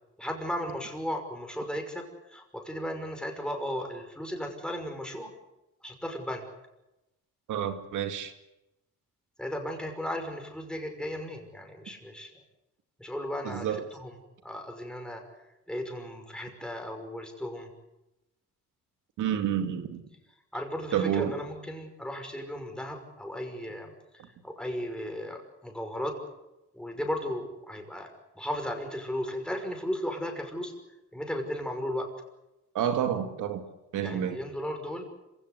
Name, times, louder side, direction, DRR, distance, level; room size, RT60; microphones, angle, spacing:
voice 1, 0.2-5.3 5.8-6.4 9.4-12.3 13.0-14.2 14.4-17.7 20.5-26.1 26.7-28.1 28.4-30.7 31.1-32.1 34.0-35.0, equal, 5° left, 5.8 m, -35 dB
voice 2, 7.5-8.3 13.4-13.9 19.2-20.0 20.9-21.4 32.7-33.6 33.9-34.4, right 9 dB, 80° right, 2.4 m, -29 dB
26.5 x 16.5 x 8.2 m
cardioid pair, 90°, 30 cm